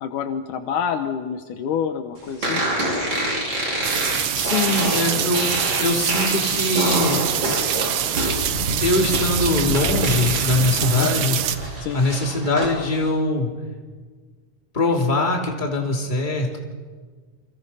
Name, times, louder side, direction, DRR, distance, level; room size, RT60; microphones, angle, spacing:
voice 1, 0.0-2.6 10.8-11.1 11.8-12.0, left 7 dB, 70° left, 7 dB, 2.5 m, -27 dB
sound 1, 2.4-10.7 11.1-12.7, right 1 dB, 35° right, 5.9 m, -26 dB
sound 2, 3.8-11.6, right 10 dB, 65° right, 1.5 m, -25 dB
voice 2, 4.3-5.5 5.8-7.2 8.8-11.4 11.9-13.5 14.7-16.6, left 2 dB, 15° left, 0 dB, 2.7 m, -22 dB
28.5 x 25.0 x 5.6 m, 1.5 s
omnidirectional pair, 3.9 m